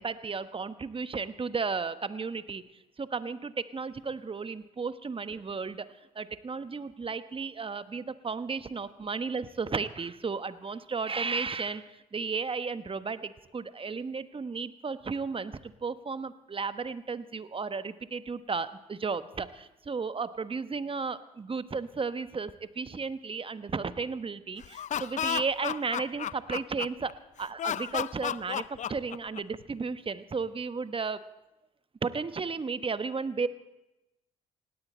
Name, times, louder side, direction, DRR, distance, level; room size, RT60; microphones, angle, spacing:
voice 1, 0.0-2.6 3.0-5.8 6.1-11.8 12.1-27.1 27.4-31.2 32.0-33.5, right 4 dB, 30° right, 13 dB, 1.0 m, -34 dB
Laughter, 24.6-27.1 27.6-29.6, left 9 dB, 45° left, 0.4 m, -33 dB
19.0 x 17.0 x 4.3 m, 0.98 s
hypercardioid pair, 45°, 18 cm